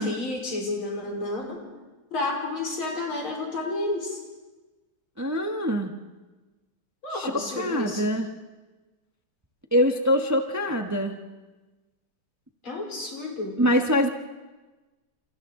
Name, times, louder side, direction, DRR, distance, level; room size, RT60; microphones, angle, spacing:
voice 1, 0.0-1.7 2.1-4.2 7.0-8.1 12.6-13.6, left 2 dB, 85° left, 0 dB, 5.2 m, -31 dB
voice 2, 5.2-5.9 7.1-7.3 7.6-8.3 9.7-11.2 13.6-14.1, equal, 10° right, 4 dB, 0.8 m, -24 dB
29.5 x 28.0 x 3.8 m, 1.2 s
omnidirectional pair, 2.2 m